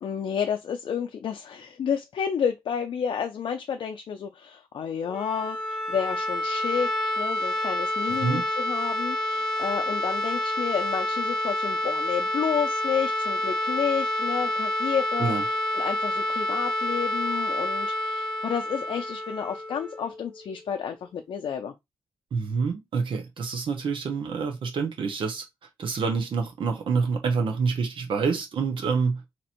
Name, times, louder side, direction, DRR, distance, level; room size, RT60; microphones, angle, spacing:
voice 1, 0.0-21.7, left 7 dB, 65° left, 0.5 m, -31 dB
sound 1, 5.0-20.8, left 1 dB, 5° left, 1.1 m, -28 dB
voice 2, 22.3-25.4 25.8-29.2, right 5 dB, 65° right, 0.9 m, -27 dB
2.9 x 2.6 x 4.3 m
wide cardioid pair, 115°, 9 cm